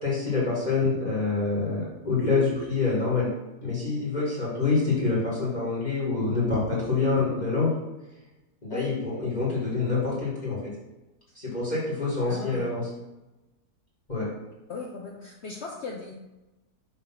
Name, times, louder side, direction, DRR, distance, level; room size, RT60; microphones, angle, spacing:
voice 1, 0.0-3.3 3.6-7.7 8.6-10.7 11.4-12.8 14.1-14.3, left 4 dB, 25° left, -7 dB, 2.0 m, -26 dB
voice 2, 12.3-12.7 14.7-16.1, left 4 dB, 60° left, 0 dB, 0.8 m, -37 dB
5.8 x 3.5 x 5.8 m, 1.0 s
omnidirectional pair, 1.7 m